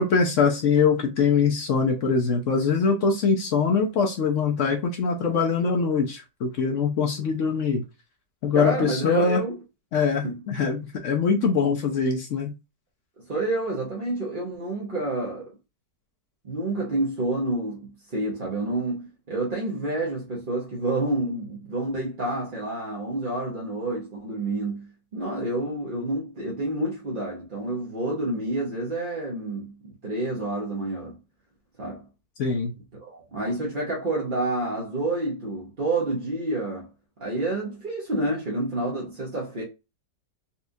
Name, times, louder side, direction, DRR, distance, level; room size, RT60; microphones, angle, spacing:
voice 1, 0.0-7.8 8.4-9.4 9.9-12.5 32.4-32.7, left 5 dB, 65° left, 0.7 m, -23 dB
voice 2, 8.5-9.5 10.1-10.4 13.3-15.5 16.4-29.7 30.0-31.1 31.8-32.0 33.0-36.9 37.2-39.6, right 2 dB, 40° right, 0.8 m, -29 dB
4.2 x 2.3 x 2.6 m
omnidirectional pair, 1.9 m